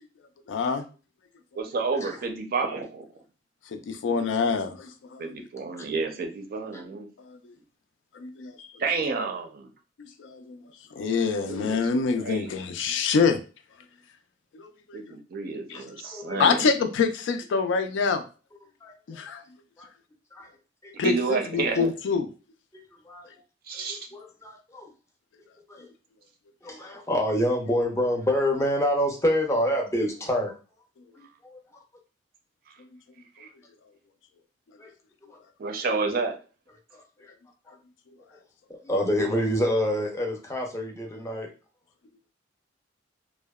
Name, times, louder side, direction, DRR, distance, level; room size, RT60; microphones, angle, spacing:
voice 1, 0.5-0.8 3.7-5.5 7.3-7.5 8.2-8.7 10.2-10.6 10.9-13.4 14.5-14.7 15.7-15.8 16.4-18.2 19.1-19.4 21.0-22.3, left 5 dB, 85° left, 8 dB, 0.3 m, -26 dB
voice 2, 1.6-3.1 5.2-7.1 8.8-9.7 11.1-11.2 11.5-11.8 12.2-12.5 14.9-16.7 21.0-21.9 23.7-24.0 33.4-33.5 35.6-36.4, right 4 dB, 55° right, 4 dB, 0.4 m, -30 dB
voice 3, 15.7-16.4 18.8-19.2 19.8-19.9 20.3-20.5 20.8-20.9 23.1-23.3 23.8-23.9 24.1-24.9 25.7-25.9 26.6-30.5 31.2-31.6 34.8-34.9 35.3-35.4 36.9-37.3 38.7-41.5, equal, 15° left, 2 dB, 0.5 m, -27 dB
2.7 x 2.0 x 2.2 m, 0.35 s
head